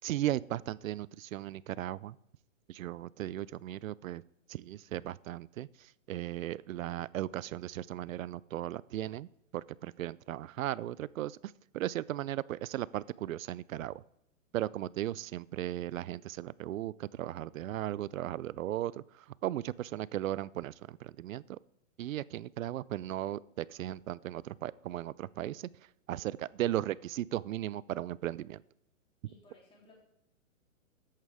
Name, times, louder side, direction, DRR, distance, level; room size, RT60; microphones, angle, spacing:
voice 1, 0.0-2.2 2.7-4.2 4.5-9.3 9.5-14.0 14.5-21.6 22.0-25.7 26.1-28.6, right 13 dB, 75° right, 22 dB, 0.5 m, -36 dB
voice 2, 29.2-30.0, left 2 dB, 15° left, -3 dB, 3.2 m, -60 dB
13.0 x 9.0 x 3.5 m, 0.81 s
hypercardioid pair, 145°, 41 cm